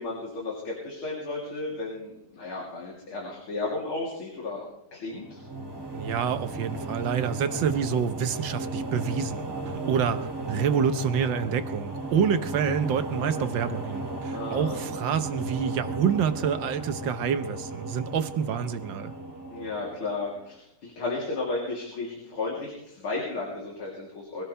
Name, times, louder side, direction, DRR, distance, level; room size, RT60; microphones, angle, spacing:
voice 1, 0.0-4.6 4.9-5.4 14.3-14.8 19.5-24.4, left 3 dB, 85° left, -3 dB, 4.2 m, -33 dB
sound 1, 5.1-20.4, right 2 dB, 10° right, 2.7 m, -35 dB
voice 2, 5.9-9.5 9.9-19.1, right 7 dB, 70° right, 10 dB, 1.6 m, -27 dB
23.0 x 17.0 x 3.4 m, 0.81 s
omnidirectional pair, 2.3 m